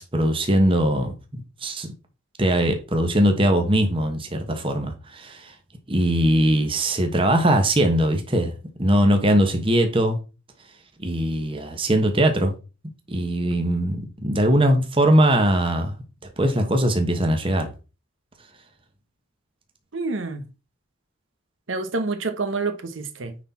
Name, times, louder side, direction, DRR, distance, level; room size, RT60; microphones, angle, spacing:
voice 1, 0.0-1.9 2.4-5.5 5.9-8.5 8.8-10.2 11.0-12.5 13.1-14.0 14.2-15.9 16.4-17.7, right 1 dB, 25° right, 1.2 m, -21 dB
voice 2, 19.9-20.4 21.7-23.4, right 3 dB, 70° right, 1.0 m, -27 dB
9.7 x 4.1 x 4.2 m
head